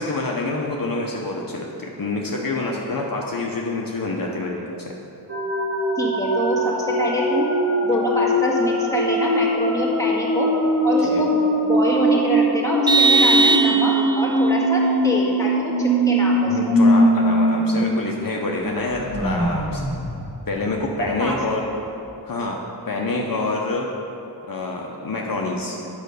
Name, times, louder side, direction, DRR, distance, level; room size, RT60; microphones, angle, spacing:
voice 1, 0.0-4.9 11.0-11.3 16.4-19.9 20.5-21.6 22.3-22.6 22.9-23.9 24.5-25.8, left 2 dB, 55° left, -1 dB, 0.8 m, -27 dB
sound 1, 5.3-17.8 18.1-18.2 18.6-21.3, equal, 35° right, 1.7 m, -21 dB
voice 2, 6.0-7.5 7.8-10.5 10.8-16.8 21.0-21.4, equal, 10° left, -5 dB, 1.8 m, -25 dB
Vehicle horn car horn honking, 12.9-14.3, right 3 dB, 10° right, 0.5 m, -18 dB
8.8 x 5.1 x 6.7 m, 2.8 s
wide cardioid pair, 90°, 41 cm